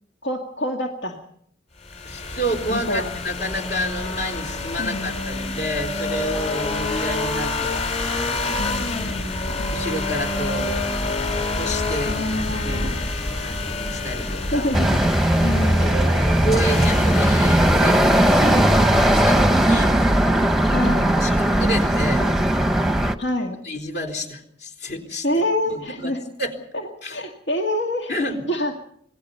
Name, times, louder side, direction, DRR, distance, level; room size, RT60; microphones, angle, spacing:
voice 1, 0.2-1.2 2.7-3.1 4.8-5.1 8.6-9.6 12.1-13.0 14.5-15.0 15.4-15.9 20.7-21.1 23.2-23.6 25.2-26.2 26.7-28.1 28.5-28.8, left 1 dB, 75° left, 1 dB, 2.2 m, -26 dB
sound 1, 1.8-19.7, left 2 dB, 35° left, 4.0 m, -28 dB
voice 2, 2.0-8.8 9.7-10.9 11.6-12.2 12.6-14.7 15.8-18.7 19.1-20.0 20.8-20.9 21.2-22.3 23.6-25.3 25.7-26.1 26.4-26.5 27.0-27.2 28.1-28.4, equal, 55° left, 2 dB, 3.8 m, -30 dB
sound 2, 14.7-23.2, right 1 dB, ahead, 0.9 m, -18 dB
27.0 x 19.0 x 5.6 m, 0.69 s
head